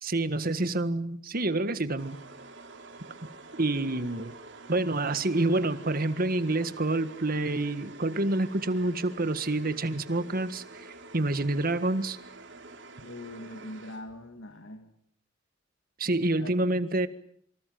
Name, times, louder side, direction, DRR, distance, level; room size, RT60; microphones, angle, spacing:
voice 1, 0.0-2.2 3.6-4.3 4.7-12.2 16.0-17.1, right 2 dB, 50° right, 1.7 m, -28 dB
sound 1, 2.0-14.3, right 3 dB, 65° right, 3.7 m, -48 dB
voice 2, 13.0-14.9 16.4-16.6, left 1 dB, 80° left, 2.0 m, -42 dB
27.0 x 25.5 x 7.8 m
head